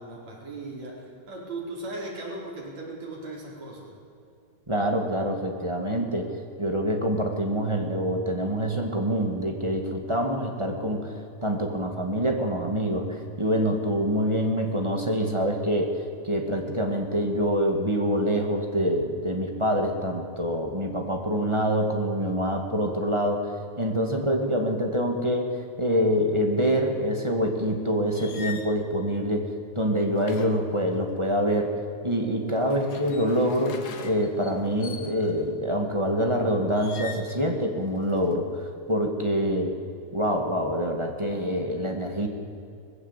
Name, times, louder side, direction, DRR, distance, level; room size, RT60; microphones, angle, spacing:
voice 1, 0.0-3.9, right 2 dB, 65° right, -3 dB, 6.0 m, -37 dB
voice 2, 4.7-6.3 6.6-11.1 11.4-29.5 29.7-31.7 32.0-39.7 40.1-42.3, equal, 10° right, 2 dB, 1.9 m, -26 dB
sound 1, 28.1-28.7 30.1-31.4 32.5-35.5 36.7-37.4 37.8-38.4, left 5 dB, 50° left, 1.3 m, -42 dB
20.5 x 15.5 x 8.5 m, 2.6 s
omnidirectional pair, 3.3 m